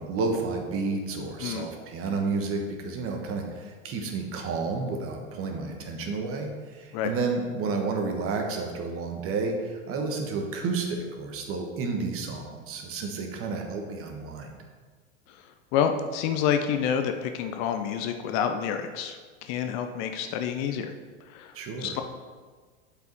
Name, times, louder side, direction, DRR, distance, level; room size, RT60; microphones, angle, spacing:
voice 1, 0.0-14.6 21.5-22.0, right 4 dB, 35° right, 3 dB, 1.3 m, -31 dB
voice 2, 15.7-20.9 21.3-21.5 21.8-22.0, left 8 dB, 45° left, 7 dB, 0.7 m, -28 dB
8.0 x 5.1 x 4.5 m, 1.5 s
hypercardioid pair, 90°, 39 cm